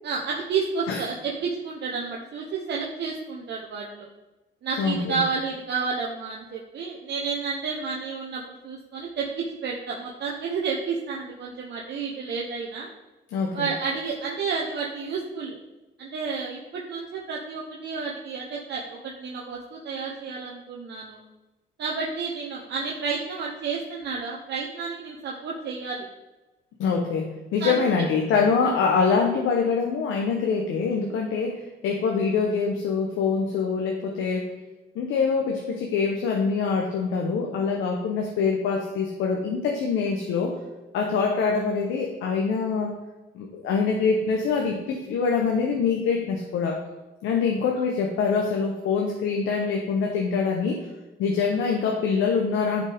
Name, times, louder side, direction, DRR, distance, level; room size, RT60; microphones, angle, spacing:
voice 1, 0.0-4.1 4.6-12.9 13.5-15.6 16.0-21.2 21.8-26.1 27.6-27.7 28.6-28.7, right 5 dB, 60° right, -2 dB, 1.0 m, -31 dB
voice 2, 4.8-5.2 13.3-13.7 26.8-34.5 34.9-40.6 40.9-42.9 43.3-46.8 47.2-50.8 51.2-52.8, left 5 dB, 85° left, 1 dB, 1.0 m, -24 dB
10.0 x 5.1 x 3.6 m, 1.1 s
cardioid pair, 90°, 20 cm